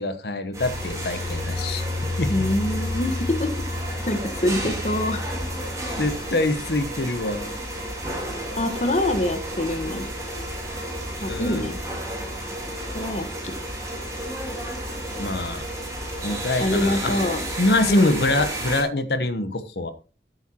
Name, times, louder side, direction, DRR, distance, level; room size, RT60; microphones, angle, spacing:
voice 1, 0.0-1.8 2.2-2.5 4.6-4.8 6.0-7.5 11.3-11.7 15.2-15.6 16.2-17.1 17.6-19.9, left 2 dB, 65° left, 10 dB, 1.1 m, -25 dB
sound 1, 0.5-18.8, equal, 20° right, 3.5 m, -31 dB
voice 2, 2.3-3.6 4.1-5.3 8.5-10.1 11.2-11.8 12.9-13.5 16.6-17.4 17.9-18.1, left 1 dB, 40° left, 6 dB, 1.3 m, -25 dB
13.0 x 8.0 x 2.9 m, 0.35 s
head